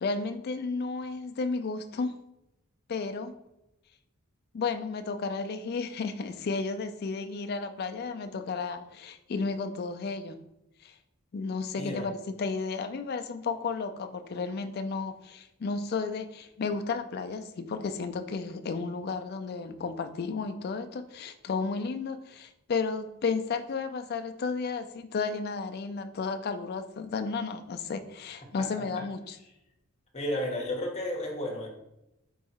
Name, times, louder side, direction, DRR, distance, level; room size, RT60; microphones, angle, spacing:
voice 1, 0.0-2.1 2.9-3.4 4.5-10.4 10.8-11.0 11.3-29.4, left 4 dB, 45° left, 9 dB, 0.3 m, -33 dB
voice 2, 11.8-12.1 28.6-29.0 30.1-31.7, left 1 dB, 30° left, 0 dB, 0.9 m, -33 dB
4.6 x 2.8 x 4.1 m, 0.88 s
head